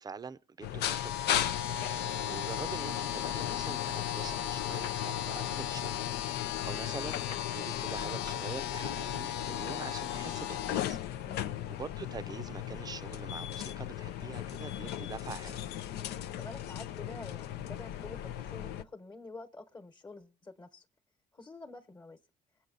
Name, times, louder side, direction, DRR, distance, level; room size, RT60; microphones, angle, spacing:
voice 1, 0.0-1.6 1.9-6.0 6.6-7.2 7.5-11.0 11.7-15.7, right 5 dB, 25° right, 0.5 m, -44 dB
sound 1, 0.6-18.8, left 11 dB, 75° left, 0.6 m, -35 dB
voice 2, 11.3-11.7 16.4-20.8 21.3-22.2, left 3 dB, 25° left, 1.2 m, -48 dB
22.0 x 8.4 x 3.9 m
cardioid pair, 110°, 17 cm